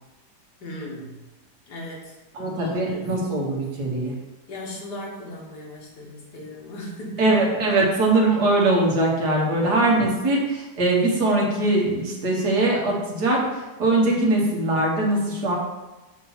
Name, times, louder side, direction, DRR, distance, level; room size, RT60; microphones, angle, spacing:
voice 1, 0.6-1.2 1.7-2.2 2.5-3.3 4.5-7.3 9.8-10.0, left 1 dB, 75° left, -2 dB, 2.0 m, -37 dB
voice 2, 2.3-4.1 7.2-15.5, right 2 dB, 75° right, -2 dB, 1.9 m, -21 dB
7.4 x 2.9 x 5.6 m, 1.1 s
omnidirectional pair, 1.8 m